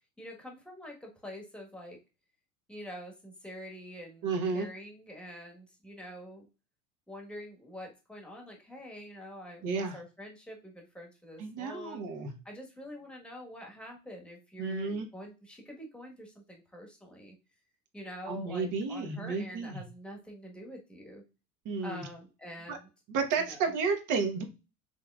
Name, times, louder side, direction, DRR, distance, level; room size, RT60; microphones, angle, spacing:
voice 1, 0.2-2.0 2.7-6.5 7.1-12.0 12.4-17.4 17.9-21.2 21.8-22.9 23.3-23.7, equal, ahead, 0 dB, 1.4 m, -46 dB
voice 2, 4.2-4.7 9.6-10.0 11.4-12.3 14.6-15.1 18.3-19.8 21.6-22.1 22.7-22.8 23.1-24.4, right 4 dB, 40° right, 5 dB, 1.3 m, -32 dB
5.7 x 3.5 x 2.4 m, 0.31 s
hypercardioid pair, 95°, 47 cm